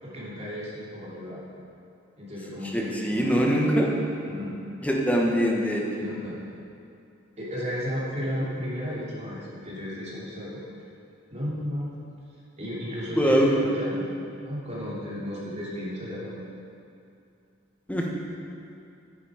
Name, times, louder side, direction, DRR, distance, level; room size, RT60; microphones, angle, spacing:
voice 1, 0.0-1.4 2.2-3.7 4.2-4.5 6.0-6.4 7.4-10.6 11.3-11.8 12.6-16.4, equal, 35° right, -7 dB, 2.9 m, -34 dB
voice 2, 2.7-3.9 4.8-5.8 13.1-13.5 17.9-18.1, equal, 5° left, -1 dB, 1.1 m, -23 dB
10.0 x 8.6 x 5.0 m, 2.5 s
head